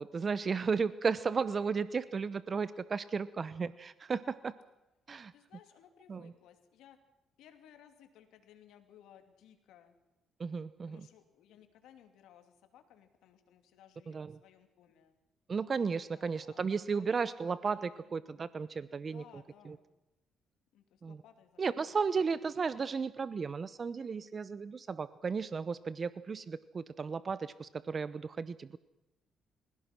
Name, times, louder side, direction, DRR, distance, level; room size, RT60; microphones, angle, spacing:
voice 1, 0.0-4.5 5.1-5.3 6.1-6.3 10.4-11.1 14.1-14.4 15.5-19.2 19.6-19.8 21.0-21.2 21.6-28.8, right 5 dB, 40° right, 16 dB, 0.8 m, -34 dB
voice 2, 5.3-7.0 7.4-9.9 10.9-15.2 16.1-16.6 16.9-17.0 17.8-18.1 19.0-19.8 20.7-21.8, left 10 dB, 85° left, 7 dB, 2.8 m, -60 dB
28.5 x 17.0 x 6.1 m, 0.96 s
cardioid pair, 90°, 0 cm